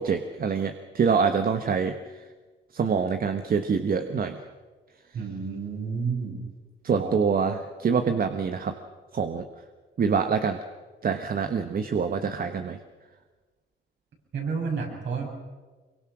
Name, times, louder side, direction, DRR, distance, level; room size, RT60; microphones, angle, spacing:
voice 1, 0.0-1.9 2.7-4.4 6.8-8.7 9.1-9.4 10.0-10.6 11.0-12.8, right 6 dB, 45° right, 7 dB, 1.3 m, -25 dB
voice 2, 5.1-6.4 6.9-7.2 14.3-15.3, right 5 dB, 65° right, 0 dB, 7.3 m, -30 dB
24.0 x 23.5 x 6.2 m, 1.3 s
cardioid pair, 90°, 20 cm